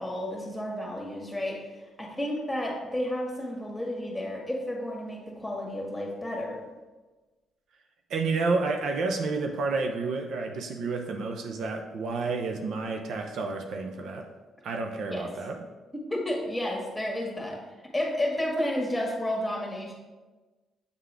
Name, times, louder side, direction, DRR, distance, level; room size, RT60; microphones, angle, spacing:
voice 1, 0.0-1.6 2.0-6.6 15.1-15.3 16.1-17.6 17.9-19.9, left 1 dB, 5° left, -1 dB, 1.8 m, -31 dB
voice 2, 8.1-14.3 14.6-15.6, right 3 dB, 70° right, 4 dB, 0.6 m, -30 dB
8.1 x 3.7 x 3.4 m, 1.2 s
cardioid pair, 90°, 0 cm